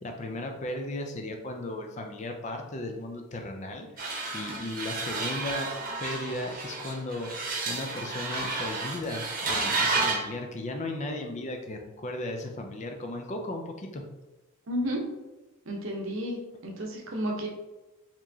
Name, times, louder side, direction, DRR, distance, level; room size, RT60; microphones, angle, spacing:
voice 1, 0.0-5.7 6.0-14.0, left 2 dB, 35° left, 3 dB, 0.4 m, -36 dB
sound 1, 4.0-10.3, right 3 dB, 40° right, 0.9 m, -31 dB
voice 2, 14.7-15.0 15.7-17.5, equal, 70° right, 1 dB, 0.8 m, -32 dB
4.3 x 3.0 x 2.7 m, 1.1 s
head